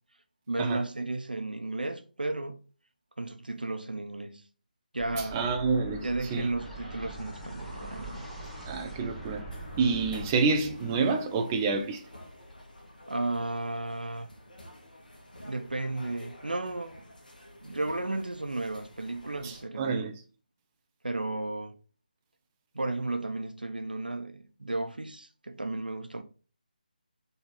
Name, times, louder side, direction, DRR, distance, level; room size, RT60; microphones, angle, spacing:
voice 1, 0.5-2.6 3.2-4.4 4.9-5.4 6.0-8.3 13.1-14.3 15.4-17.1 17.6-20.1 21.0-21.8 22.7-26.2, right 2 dB, 75° right, 0.9 m, -34 dB
sound 1, 5.0-10.3, right 2 dB, 15° left, 1.7 m, -43 dB
voice 2, 5.2-6.5 8.7-9.4 9.8-12.0 19.4-20.1, right 4 dB, 15° right, 0.4 m, -28 dB
sound 2, 6.6-12.9, equal, ahead, 1.1 m, -48 dB
sound 3, 9.5-19.6, left 1 dB, 65° left, 2.1 m, -50 dB
4.3 x 4.0 x 5.4 m
figure-of-eight pair, 155°, 5 cm